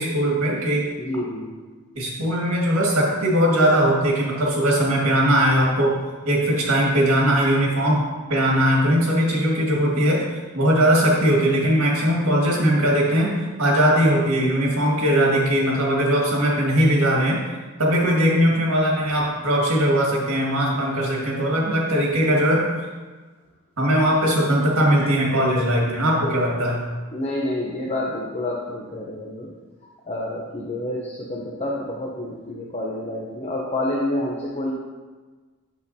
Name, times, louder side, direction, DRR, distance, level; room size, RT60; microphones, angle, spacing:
voice 1, 0.0-0.9 2.0-6.0 6.3-8.0 8.3-10.2 10.5-13.3 13.6-17.4 17.8-22.6 23.8-26.8, equal, 70° right, -3 dB, 2.0 m, -20 dB
voice 2, 1.0-1.5 27.1-29.5 30.1-34.7, left 1 dB, 30° left, -4 dB, 0.7 m, -28 dB
8.3 x 7.0 x 2.8 m, 1.3 s
head